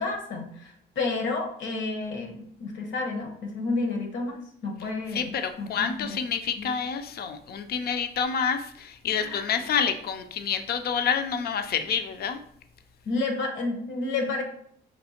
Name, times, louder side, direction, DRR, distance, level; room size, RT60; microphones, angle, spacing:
voice 1, 0.0-6.2 6.6-6.7 9.2-9.4 13.0-14.4, left 3 dB, 70° left, 3 dB, 1.1 m, -31 dB
voice 2, 5.1-12.4, left 7 dB, 50° left, 8 dB, 0.5 m, -28 dB
5.2 x 2.8 x 2.8 m, 0.64 s
cardioid pair, 90°, 20 cm